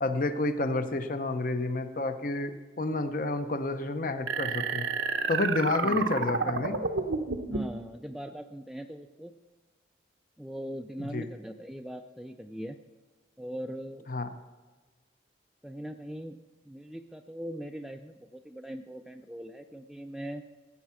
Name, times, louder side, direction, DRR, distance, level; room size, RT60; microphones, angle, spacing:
voice 1, 0.0-4.9 5.3-6.8 11.1-11.2 14.1-14.3, left 2 dB, 45° left, 9 dB, 0.7 m, -30 dB
sound 1, 4.3-7.8, right 4 dB, 85° right, 0.9 m, -30 dB
voice 2, 5.8-6.1 7.5-9.4 10.4-12.8 13.4-14.1 15.6-16.4 16.7-20.4, equal, ahead, 5 dB, 0.4 m, -40 dB
14.0 x 8.4 x 5.7 m, 1.3 s
head